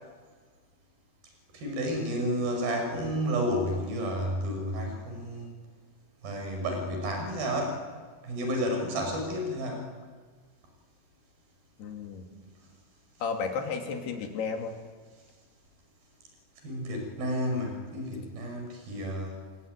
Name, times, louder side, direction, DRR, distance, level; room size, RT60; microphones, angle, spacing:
voice 1, 1.5-5.5 6.2-7.8 8.2-9.9 16.6-19.4, equal, 65° right, 2 dB, 7.7 m, -31 dB
voice 2, 11.8-12.3 13.2-14.7, left 5 dB, 75° left, 4 dB, 4.5 m, -33 dB
28.5 x 20.5 x 9.6 m, 1.5 s
omnidirectional pair, 4.7 m